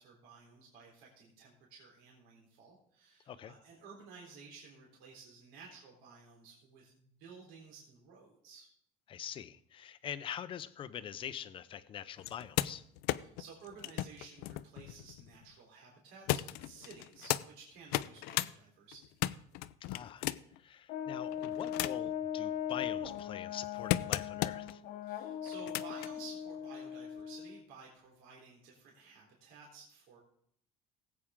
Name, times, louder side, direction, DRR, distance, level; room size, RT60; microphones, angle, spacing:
voice 1, 0.0-8.7 13.1-19.0 25.1-30.2, right 5 dB, 80° right, -2 dB, 3.8 m, -54 dB
voice 2, 9.1-12.9 19.9-20.3 20.6-24.8, left 9 dB, 35° left, 13 dB, 0.6 m, -44 dB
sound 1, 12.2-15.5 16.3-17.4 17.8-18.5 18.9-20.6 21.2-22.1 22.7-24.7 25.5-26.1 27.2-27.3, left 16 dB, 75° left, 0.5 m, -36 dB
Brass instrument, 20.9-27.6, left 9 dB, 60° left, 1.0 m, -39 dB
19.0 x 8.5 x 3.7 m, 0.67 s
cardioid pair, 160°, 16 cm